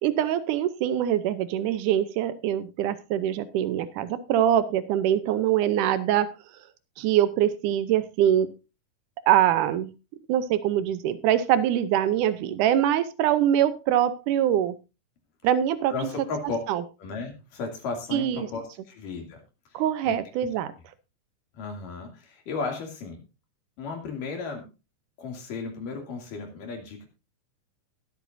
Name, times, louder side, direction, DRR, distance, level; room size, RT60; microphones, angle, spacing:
voice 1, 0.0-6.3 7.0-8.5 9.3-9.9 10.3-14.7 15.4-15.9 16.7-16.8 18.1-18.5 19.7-20.7, right 11 dB, 80° right, 13 dB, 2.3 m, -23 dB
voice 2, 15.9-16.6 17.0-19.4 19.7-20.2 21.5-23.2 23.8-24.6 25.2-27.1, left 4 dB, 85° left, 2 dB, 4.3 m, -34 dB
20.5 x 8.1 x 2.6 m, 0.28 s
omnidirectional pair, 3.7 m